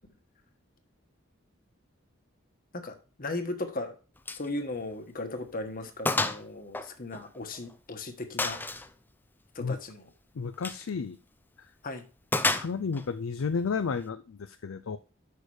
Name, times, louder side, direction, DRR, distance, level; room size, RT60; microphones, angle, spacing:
voice 1, 2.7-3.9 4.3-8.6 9.5-10.1 11.8-12.0, left 2 dB, 45° left, 6 dB, 1.3 m, -37 dB
Gunshot gunfire, 4.3-4.5 4.8-4.9 5.4-5.5 6.1-6.4 6.7-7.7 8.4-8.9 10.5-10.8 12.3-13.1, left 2 dB, 10° left, 0.4 m, -29 dB
voice 2, 10.4-11.2 12.5-15.0, left 5 dB, 75° left, 10 dB, 0.5 m, -32 dB
6.7 x 6.5 x 4.8 m, 0.35 s
head